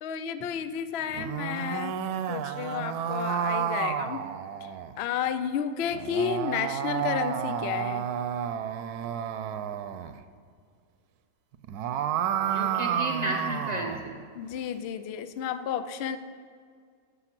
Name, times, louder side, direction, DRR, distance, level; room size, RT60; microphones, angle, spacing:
voice 1, 0.0-2.0 2.3-4.2 4.6-8.1 14.3-16.2, left 8 dB, 65° left, 11 dB, 0.6 m, -32 dB
sound 1, 1.0-4.9 5.9-10.1 11.5-14.0, right 9 dB, 85° right, 1.1 m, -31 dB
voice 2, 12.4-14.2, right 1 dB, 35° right, 0 dB, 0.8 m, -33 dB
13.5 x 5.9 x 5.9 m, 2.1 s
omnidirectional pair, 1.6 m